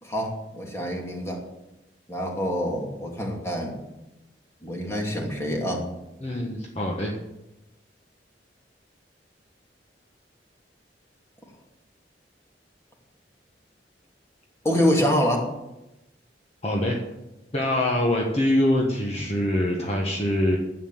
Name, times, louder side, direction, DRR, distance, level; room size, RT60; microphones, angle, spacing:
voice 1, 0.0-1.4 2.1-3.7 4.6-5.9 14.6-15.5, equal, 15° left, 0 dB, 2.6 m, -26 dB
voice 2, 6.2-7.1 16.6-17.0 17.5-20.6, left 1 dB, 40° left, 0 dB, 1.4 m, -24 dB
11.0 x 8.4 x 7.3 m, 0.95 s
head